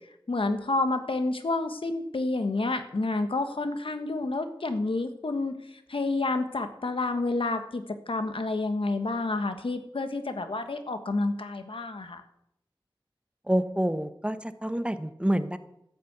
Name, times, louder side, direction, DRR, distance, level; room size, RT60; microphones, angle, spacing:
voice 1, 0.3-12.2, left 2 dB, 85° left, 8 dB, 1.4 m, -29 dB
voice 2, 13.5-15.6, right 1 dB, 10° right, 11 dB, 0.9 m, -27 dB
12.5 x 8.6 x 8.1 m, 0.80 s
wide cardioid pair, 55°, 9 cm